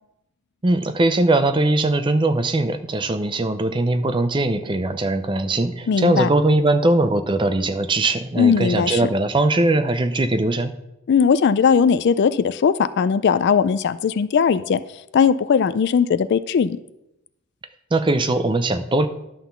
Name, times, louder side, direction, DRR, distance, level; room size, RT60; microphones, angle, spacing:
voice 1, 0.6-10.7 17.9-19.1, right 2 dB, 25° right, 10 dB, 0.5 m, -20 dB
voice 2, 5.9-6.3 8.4-9.1 11.1-14.8 15.1-16.8, left 6 dB, 50° left, 14 dB, 0.3 m, -18 dB
11.0 x 3.8 x 6.9 m, 0.87 s
head